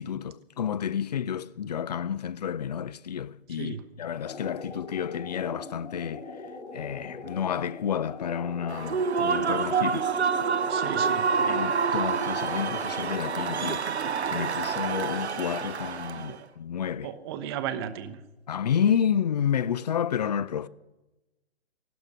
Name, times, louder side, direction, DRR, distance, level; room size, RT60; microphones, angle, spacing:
voice 1, 0.0-6.3 6.7-10.1 11.4-13.9 14.3-17.1 18.5-20.7, left 8 dB, 40° left, 0.5 m, -30 dB
sound 1, 4.1-13.7, left 3 dB, 85° left, 3.1 m, -42 dB
Human voice / Cheering / Applause, 8.7-16.3, right 6 dB, 80° right, 0.8 m, -27 dB
voice 2, 10.7-11.2 16.2-16.4 17.0-18.1, right 9 dB, 20° right, 0.9 m, -34 dB
15.5 x 12.0 x 6.1 m
figure-of-eight pair, 140°, 33 cm